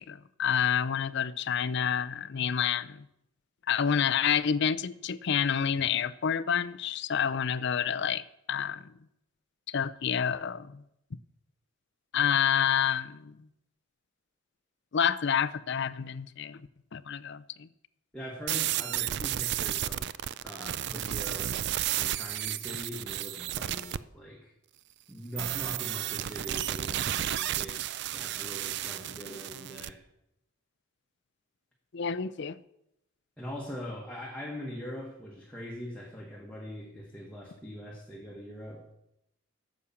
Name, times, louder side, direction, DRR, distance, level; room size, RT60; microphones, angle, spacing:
voice 1, 0.0-3.0 3.7-8.2 8.5-8.9 9.7-10.8 12.1-13.4 14.9-16.6 16.9-17.7 31.9-32.6, left 8 dB, 55° left, 0.5 m, -28 dB
voice 2, 18.1-21.6 21.9-24.5 25.1-30.0 33.4-39.0, equal, 5° left, 1.4 m, -42 dB
sound 1, 18.5-24.0 25.4-29.9, right 12 dB, 55° right, 0.4 m, -32 dB
11.5 x 7.2 x 7.0 m
head